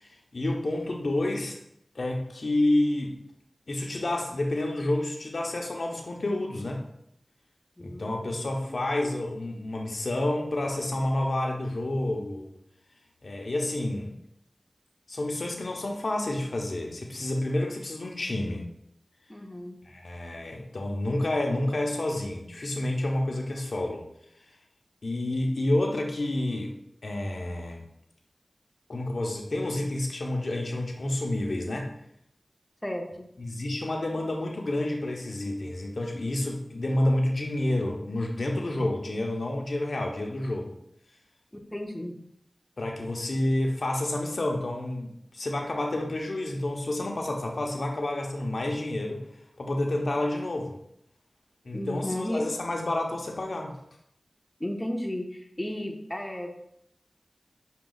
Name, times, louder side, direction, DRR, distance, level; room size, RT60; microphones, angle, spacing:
voice 1, 0.0-1.6 1.9-3.2 3.7-6.8 7.8-12.5 13.2-14.1 15.1-18.7 19.8-24.0 25.0-26.8 27.0-27.8 28.9-31.9 33.4-40.8 42.8-49.2 49.6-50.8 51.6-53.8, left 1 dB, 75° left, 1 dB, 0.7 m, -29 dB
voice 2, 7.8-8.4 8.6-8.8 19.3-19.8 32.8-33.3 41.7-42.1 51.7-52.4 54.6-56.5, left 1 dB, 15° left, 2 dB, 0.6 m, -34 dB
5.9 x 2.3 x 3.9 m, 0.74 s
wide cardioid pair, 45°, 0 cm